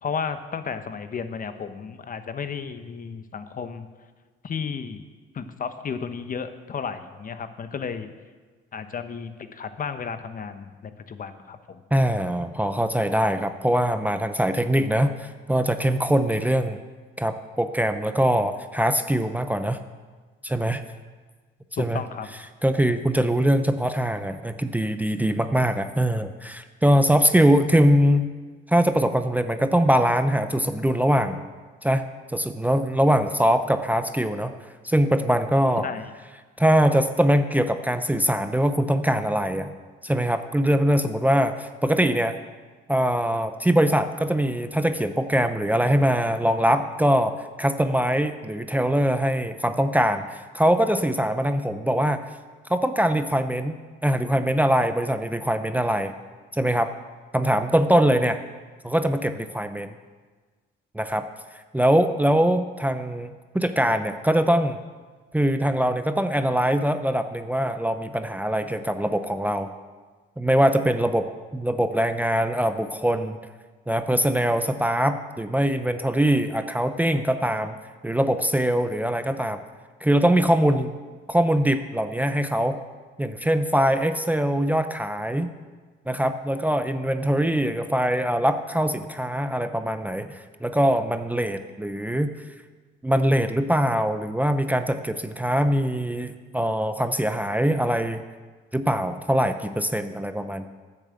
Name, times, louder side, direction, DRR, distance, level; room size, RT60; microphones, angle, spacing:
voice 1, 0.0-3.9 4.4-5.0 5.3-8.1 8.7-11.8 21.8-22.3 35.8-36.1, left 6 dB, 45° left, 10 dB, 0.8 m, -33 dB
voice 2, 11.9-16.8 17.2-19.8 20.4-20.8 21.8-22.0 22.6-28.3 28.7-31.4 31.8-34.5 34.8-35.9 36.6-39.7 40.0-42.4 42.9-52.2 52.7-53.8 54.0-56.1 56.5-56.9 57.3-58.4 58.8-59.9 60.9-61.3 61.7-64.8 65.3-69.7 70.4-73.4 73.9-77.8 78.0-79.6 80.0-80.9 81.3-82.8 83.2-85.5 86.1-92.3 93.0-98.2 98.7-100.7, equal, 10° right, 9 dB, 0.6 m, -22 dB
10.0 x 6.8 x 7.6 m, 1.4 s
cardioid pair, 90°, 20 cm